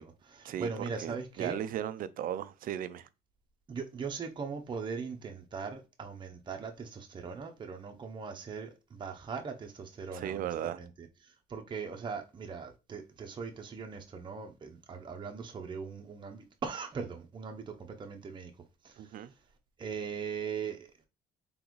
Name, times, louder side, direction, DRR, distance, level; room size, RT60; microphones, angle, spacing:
voice 1, 0.0-1.6 3.7-11.1 11.5-18.5 18.8-19.0 19.8-20.9, right 5 dB, 30° right, 0.7 m, -40 dB
voice 2, 1.0-3.1 10.1-10.8 19.0-19.3, right 10 dB, 55° right, 0.5 m, -36 dB
3.9 x 3.5 x 3.1 m
cardioid pair, 110°, 17 cm